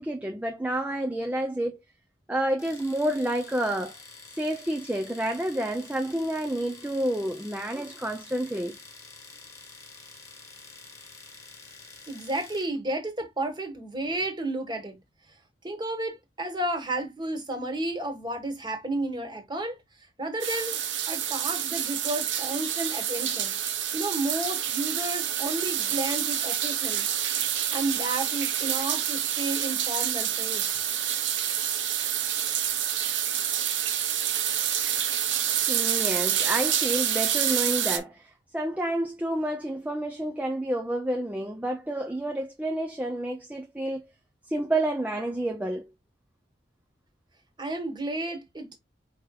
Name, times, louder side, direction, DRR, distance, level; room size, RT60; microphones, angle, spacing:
voice 1, 0.0-1.8 2.3-4.0 4.3-8.8 35.7-44.1 44.5-45.9, right 1 dB, 10° right, 0.4 m, -29 dB
Domestic sounds home sounds, 2.6-12.8, left 3 dB, 20° left, 1.3 m, -48 dB
voice 2, 12.1-15.0 15.6-19.8 20.2-23.6 23.9-27.1 27.7-30.7 47.6-48.7, right 2 dB, 25° right, 1.4 m, -32 dB
sound 1, 20.4-38.0, right 10 dB, 80° right, 0.8 m, -28 dB
4.8 x 4.7 x 2.2 m
head